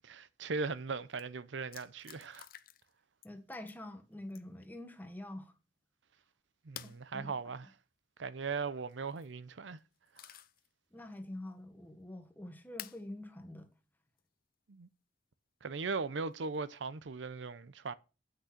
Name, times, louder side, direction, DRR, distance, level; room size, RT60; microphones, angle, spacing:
voice 1, 0.0-2.5 6.6-7.7 8.2-9.8 10.2-10.3 14.7-14.9 15.6-17.9, right 4 dB, 85° right, 0.6 m, -39 dB
sound 1, 0.8-0.9 1.1-1.2 1.7-2.9 3.2-3.8 4.3-4.7 6.7-7.0 8.9-9.3 9.8-10.7 11.1-11.2 12.8-13.0 14.2-14.3 16.3-16.8, left 12 dB, 50° left, 0.6 m, -50 dB
voice 2, 3.2-5.5 7.1-7.3 10.9-13.7, left 1 dB, 10° left, 1.4 m, -46 dB
8.2 x 6.3 x 5.8 m
head